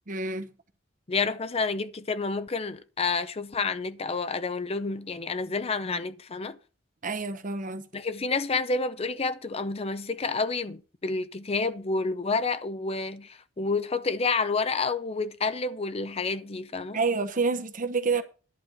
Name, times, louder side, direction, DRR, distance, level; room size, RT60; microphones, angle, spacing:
voice 1, 0.1-0.5 7.0-7.8 16.9-18.2, right 4 dB, 45° right, 0.9 m, -28 dB
voice 2, 1.1-6.6 7.9-17.0, left 4 dB, 30° left, 0.6 m, -29 dB
11.0 x 4.4 x 7.8 m
head